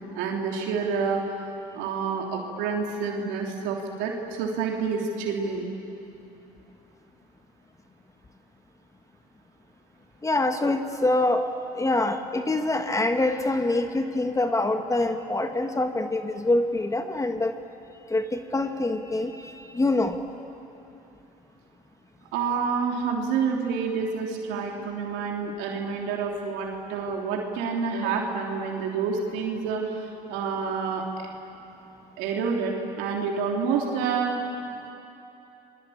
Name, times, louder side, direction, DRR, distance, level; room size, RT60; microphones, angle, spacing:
voice 1, 0.1-1.2 1.7-5.7 22.3-31.3 32.2-34.3, right 5 dB, 80° right, 0 dB, 3.4 m, -28 dB
voice 2, 10.2-11.5 11.7-17.6 18.1-20.2, left 2 dB, 15° left, 6 dB, 1.7 m, -25 dB
29.0 x 22.5 x 8.8 m, 2.9 s
supercardioid pair, 80°, 18 cm